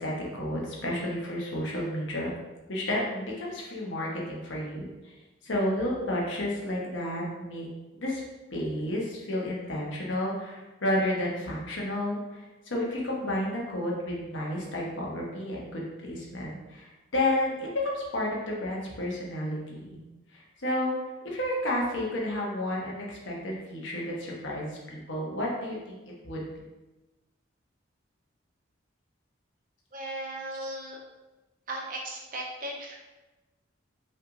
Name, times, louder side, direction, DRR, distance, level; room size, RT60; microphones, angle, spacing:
voice 1, 0.0-2.3 2.7-5.1 5.4-7.7 7.9-8.2 8.5-20.0 20.3-20.9 21.2-26.0 26.2-26.4, left 1 dB, 75° left, -3 dB, 1.1 m, -31 dB
voice 2, 29.9-31.0 31.7-32.9, right 1 dB, 45° right, -2 dB, 0.9 m, -36 dB
5.7 x 3.4 x 2.6 m, 1.1 s
head